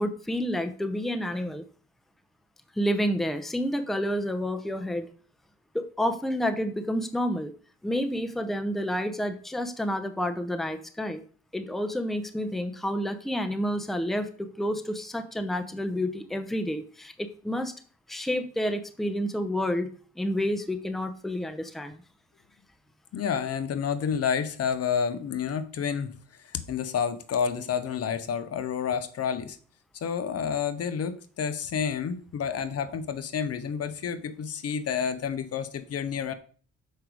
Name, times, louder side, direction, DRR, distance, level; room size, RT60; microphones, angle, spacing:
voice 1, 0.0-1.6 2.8-5.1 5.7-7.5 7.8-11.2 11.5-17.7 18.1-19.9 20.2-22.0, equal, ahead, 9 dB, 0.7 m, -29 dB
voice 2, 23.1-26.1 26.5-29.6 30.0-36.3, left 7 dB, 55° left, 12 dB, 0.8 m, -29 dB
6.6 x 5.0 x 4.6 m, 0.43 s
cardioid pair, 90°, 30 cm